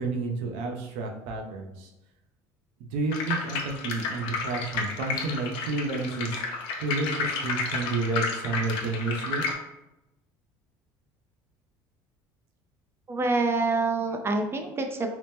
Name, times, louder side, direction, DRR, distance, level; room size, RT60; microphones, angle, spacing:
voice 1, 0.0-1.9 2.9-6.4 6.8-9.4, right 3 dB, 80° right, 3 dB, 0.6 m, -30 dB
sound 1, 3.1-9.5, left 4 dB, 75° left, 0.5 m, -31 dB
voice 2, 13.1-15.2, right 3 dB, 25° right, 5 dB, 0.4 m, -26 dB
2.9 x 2.0 x 3.3 m, 0.94 s
supercardioid pair, 95°, 9 cm